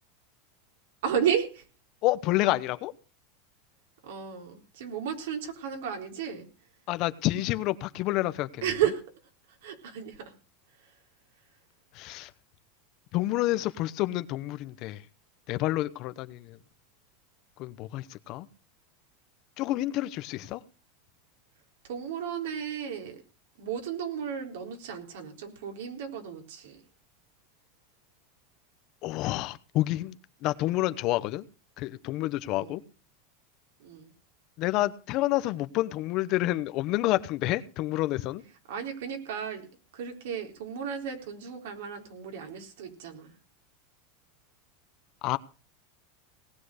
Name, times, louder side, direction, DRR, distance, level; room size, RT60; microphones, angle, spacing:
voice 1, 1.0-1.6 4.0-6.5 8.6-9.0 9.6-10.3 21.9-23.2 23.6-26.8 32.5-32.8 33.8-34.1 38.7-39.7 39.9-43.3, right 8 dB, 80° right, 3.9 m, -33 dB
voice 2, 2.0-2.9 6.9-8.6 11.9-12.3 13.1-15.0 15.5-16.6 17.6-18.5 19.6-20.6 29.0-30.2 30.4-31.4 31.8-32.8 34.6-38.4 45.2-45.4, left 17 dB, 45° left, 0.9 m, -29 dB
18.5 x 7.7 x 6.5 m
supercardioid pair, 140°, 0 cm